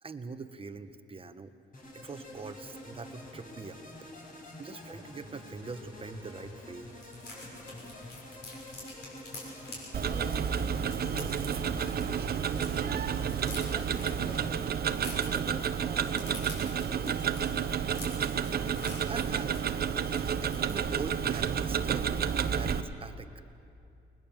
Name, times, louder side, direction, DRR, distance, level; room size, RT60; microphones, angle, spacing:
voice 1, 0.0-1.5 1.9-3.8 4.6-6.9 19.1-19.6 20.4-23.3, right 4 dB, 30° right, 10 dB, 1.2 m, -42 dB
sound 1, 1.7-14.5, left 1 dB, 45° left, 5.2 m, -47 dB
Opening Snickers, 6.0-6.1 6.3-6.4 6.7-12.7 12.9-21.2 21.5-21.7 22.0-22.2, left 2 dB, 60° left, 6.9 m, -48 dB
voice 2, 9.7-11.9 12.3-13.1 13.6-17.3, right 1 dB, 5° left, 1 dB, 3.1 m, -48 dB
Tick-tock, 9.9-22.8, right 7 dB, 50° right, 1.0 m, -30 dB
21.0 x 20.0 x 7.3 m, 2.6 s
cardioid pair, 90°, 20 cm